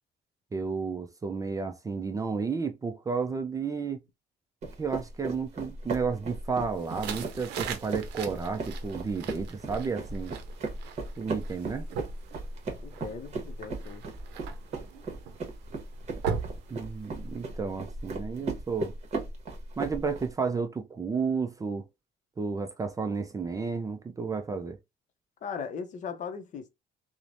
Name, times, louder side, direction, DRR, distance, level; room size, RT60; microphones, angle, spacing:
voice 1, 0.5-4.0 4.8-10.3 11.2-11.9 16.7-18.9 19.8-21.9 22.4-24.8, right 5 dB, 20° right, 0.3 m, -32 dB
sound 1, 4.6-20.3, right 2 dB, 40° right, 1.0 m, -37 dB
sound 2, 6.8-17.5, right 7 dB, 85° right, 0.6 m, -40 dB
voice 2, 12.8-14.0 25.4-26.7, left 6 dB, 45° left, 0.6 m, -38 dB
3.0 x 2.1 x 2.5 m
cardioid pair, 110°, 17 cm